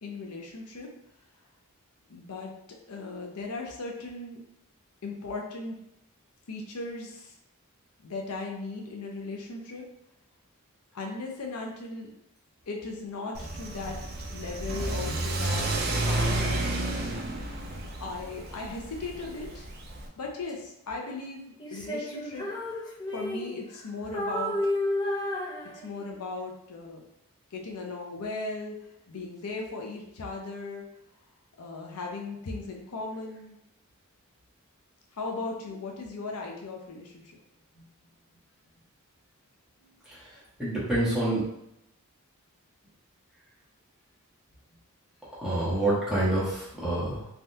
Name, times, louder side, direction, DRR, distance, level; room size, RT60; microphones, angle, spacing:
voice 1, 0.0-0.9 2.1-2.5 2.9-4.4 5.0-5.8 6.5-7.3 8.0-9.8 10.9-12.1 12.7-14.0 14.3-15.7 16.1-16.7 18.0-19.7 20.2-22.5 23.1-24.5 25.8-27.0 27.5-28.8 29.1-30.8 31.6-33.6 35.2-37.2, left 3 dB, 80° left, 1 dB, 0.6 m, -37 dB
Car / Accelerating revving vroom, 13.3-20.1, right 2 dB, 45° right, 0.4 m, -31 dB
Female singing, 21.6-23.8 24.1-26.2, left 1 dB, 20° left, 0.6 m, -32 dB
voice 2, 40.1-41.5 45.4-47.3, right 1 dB, 5° right, -9 dB, 1.0 m, -27 dB
3.4 x 2.3 x 2.7 m, 0.79 s
head